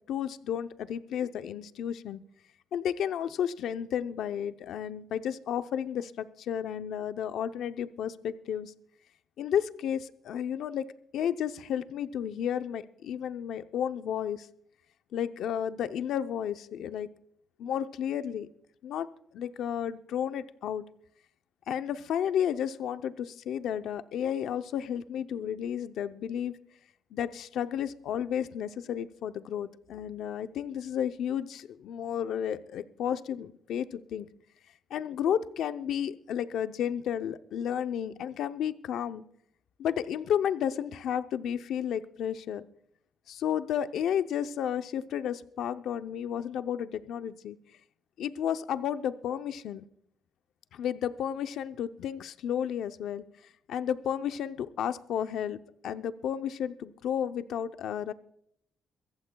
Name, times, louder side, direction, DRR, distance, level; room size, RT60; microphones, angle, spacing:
voice 1, 0.1-2.2 2.7-8.7 9.4-10.8 11.1-14.5 15.1-17.1 17.6-18.5 18.8-19.1 19.3-20.8 21.7-26.6 27.1-34.3 34.9-39.2 39.8-42.7 43.3-47.6 48.2-49.8 50.7-53.2 53.7-58.1, left 9 dB, 75° left, 10 dB, 0.6 m, -32 dB
23.5 x 14.5 x 2.3 m, 0.73 s
cardioid pair, 90°, 0 cm